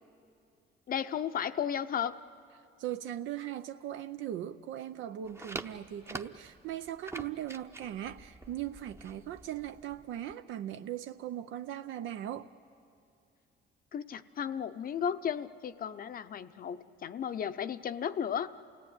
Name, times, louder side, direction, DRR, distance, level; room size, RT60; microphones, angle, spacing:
voice 1, 0.9-2.2 13.9-18.5, left 8 dB, 45° left, 10 dB, 0.6 m, -34 dB
voice 2, 2.8-12.5, right 11 dB, 80° right, 9 dB, 0.6 m, -39 dB
sound 1, 5.2-10.3, right 2 dB, 15° right, 0.8 m, -46 dB
28.5 x 17.0 x 9.7 m, 2.5 s
cardioid pair, 115°, 20 cm